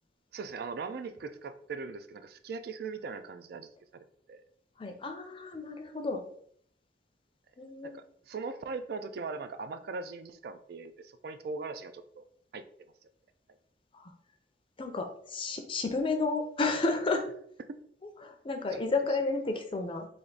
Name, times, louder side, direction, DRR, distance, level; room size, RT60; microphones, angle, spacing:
voice 1, 0.3-4.4 7.8-12.2 12.5-12.7 17.7-17.8, right 4 dB, 60° right, 10 dB, 0.3 m, -40 dB
voice 2, 4.8-6.2 7.6-7.9 13.9-14.1 14.8-17.3 18.2-20.1, left 3 dB, 30° left, 5 dB, 0.5 m, -31 dB
3.4 x 2.5 x 3.8 m, 0.63 s
head